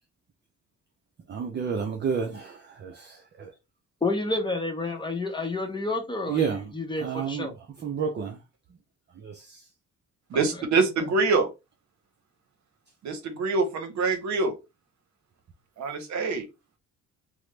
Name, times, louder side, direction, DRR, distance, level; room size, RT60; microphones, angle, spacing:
voice 1, 1.3-3.5 6.3-6.7 7.0-7.5 7.8-8.4 9.2-9.6, right 6 dB, 35° right, 0.5 m, -30 dB
voice 2, 4.0-7.5, left 2 dB, 15° left, 0.7 m, -29 dB
voice 3, 10.3-11.5 13.0-14.5 15.8-16.5, right 4 dB, 65° right, 0.8 m, -25 dB
3.0 x 2.0 x 3.1 m
cardioid pair, 90°, 30 cm